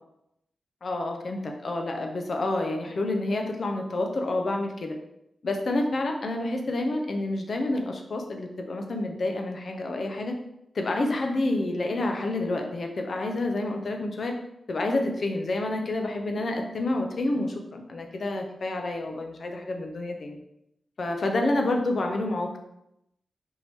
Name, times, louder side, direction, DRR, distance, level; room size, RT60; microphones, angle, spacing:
voice 1, 0.8-5.0 5.4-10.4 10.7-14.4 14.7-20.4 21.0-22.5, left 2 dB, 55° left, 3 dB, 0.7 m, -28 dB
4.4 x 2.9 x 3.4 m, 0.82 s
wide cardioid pair, 90°, 0 cm